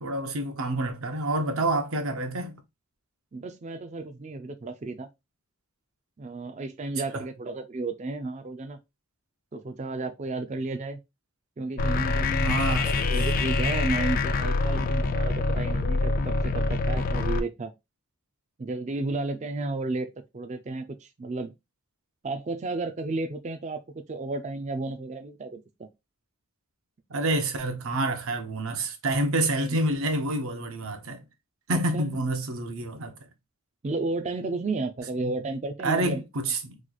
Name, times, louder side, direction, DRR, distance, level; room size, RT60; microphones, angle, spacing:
voice 1, 0.0-2.6 7.1-7.2 12.4-13.1 27.1-31.3 31.7-33.2 35.2-35.4 35.8-36.8, right 2 dB, 70° right, 0.7 m, -28 dB
voice 2, 3.3-5.1 6.2-8.8 9.5-11.0 11.6-17.7 18.6-21.5 22.2-23.8 24.1-25.9 29.6-29.8 31.7-32.1 33.8-36.2, right 3 dB, 30° right, 0.4 m, -33 dB
sound 1, 11.8-17.4, left 3 dB, 40° left, 0.3 m, -25 dB
3.1 x 2.3 x 3.8 m
head